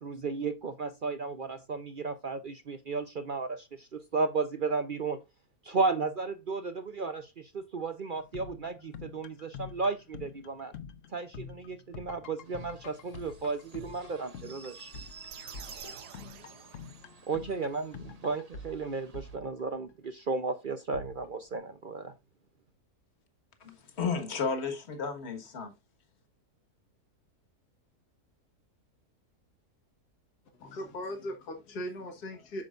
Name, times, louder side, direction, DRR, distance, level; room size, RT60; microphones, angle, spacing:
voice 1, 0.0-5.2 5.6-10.7 11.1-14.9 17.3-22.1, right 4 dB, 60° right, 0.5 m, -34 dB
sound 1, 8.1-20.1 20.9-21.6, left 5 dB, 60° left, 1.0 m, -47 dB
sound 2, 12.4-19.4, right 4 dB, 30° right, 0.8 m, -53 dB
sound 3, 15.3-17.4, right 10 dB, 85° right, 1.3 m, -49 dB
voice 2, 23.6-25.7, left 5 dB, 45° left, 1.6 m, -33 dB
voice 3, 30.6-32.6, equal, 75° left, 2.0 m, -38 dB
8.6 x 6.7 x 2.5 m
omnidirectional pair, 1.7 m